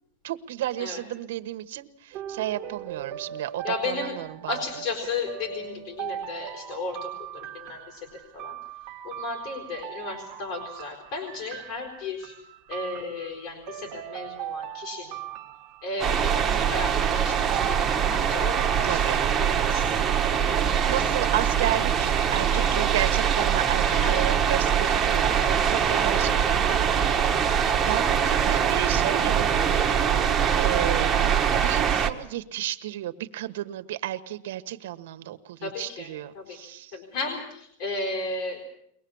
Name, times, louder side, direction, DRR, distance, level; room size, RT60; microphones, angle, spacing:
voice 1, 0.2-4.6 18.8-19.2 20.9-26.8 27.8-36.9, right 13 dB, 75° right, 10 dB, 1.4 m, -32 dB
sound 1, 2.1-19.5, right 12 dB, 40° right, 1.5 m, -39 dB
voice 2, 3.6-4.2 4.5-8.5 9.0-12.3 12.7-15.2 15.8-20.8 22.5-22.7 23.9-24.6 26.7-26.9 28.4-28.5 35.6-36.6 36.9-38.6, left 3 dB, 55° left, 2 dB, 4.5 m, -35 dB
sound 2, 16.0-32.1, right 8 dB, 15° right, 1.4 m, -23 dB
23.0 x 19.5 x 7.2 m, 0.72 s
supercardioid pair, 160°, 0 cm